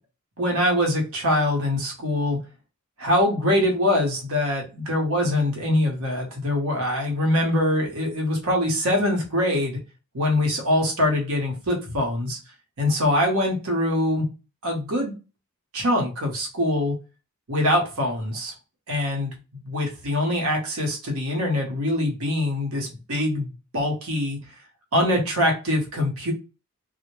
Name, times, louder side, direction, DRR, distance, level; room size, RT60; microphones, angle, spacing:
voice 1, 0.4-2.4 3.0-9.8 10.1-12.4 12.8-14.3 14.6-15.1 15.7-17.0 17.5-18.5 18.9-19.3 19.6-24.4 24.9-26.3, left 1 dB, 70° right, 1 dB, 0.9 m, -23 dB
2.1 x 2.1 x 3.0 m, 0.30 s
head